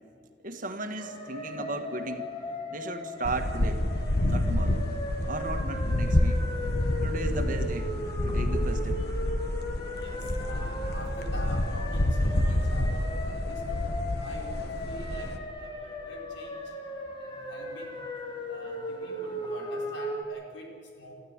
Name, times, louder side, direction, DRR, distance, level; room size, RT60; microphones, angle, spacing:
voice 1, 0.4-2.3 2.7-3.9 4.3-4.8 5.3-6.4 7.0-7.9 8.2-9.0, right 2 dB, 45° right, 6 dB, 1.7 m, -35 dB
sound 1, 1.0-20.2, left 1 dB, 25° left, 2.4 m, -38 dB
sound 2, 3.2-15.4, left 1 dB, 60° left, 1.4 m, -28 dB
voice 2, 10.0-16.7 17.2-18.0 18.5-21.1, equal, 85° left, 0 dB, 5.1 m, -45 dB
27.5 x 14.0 x 9.7 m, 2.2 s
head